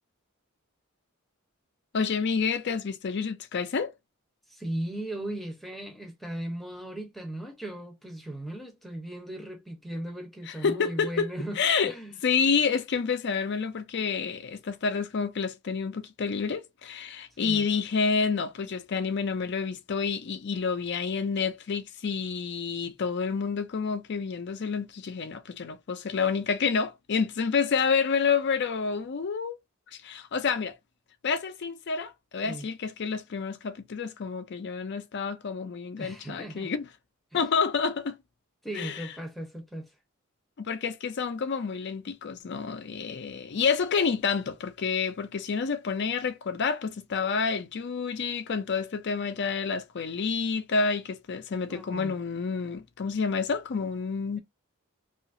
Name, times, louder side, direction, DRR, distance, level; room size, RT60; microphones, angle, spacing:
voice 1, 1.9-3.9 10.5-11.3 11.6-11.9 12.2-29.6 29.9-30.8 31.2-36.9 37.3-38.2 38.7-39.1 40.6-54.4, left 5 dB, 55° left, 0.4 m, -29 dB
voice 2, 4.5-12.2 17.4-17.7 32.4-32.7 36.0-36.7 37.3-37.4 38.6-39.9 51.7-52.2, right 1 dB, ahead, 0.7 m, -37 dB
2.8 x 2.4 x 2.5 m
head